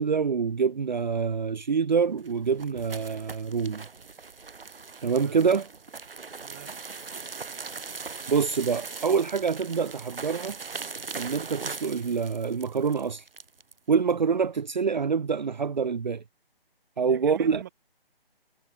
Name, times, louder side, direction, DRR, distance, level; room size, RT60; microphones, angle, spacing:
voice 1, 0.0-3.8 5.0-5.7 8.3-10.6 11.1-13.3 13.9-16.2 17.0-17.6, right 6 dB, 50° right, 0.8 m, -26 dB
sound 1, 2.0-13.8, right 4 dB, 65° right, 2.6 m, -40 dB
voice 2, 6.4-6.7 17.1-17.7, right 12 dB, 20° right, 2.6 m, -42 dB
hypercardioid pair, 170°, 30 cm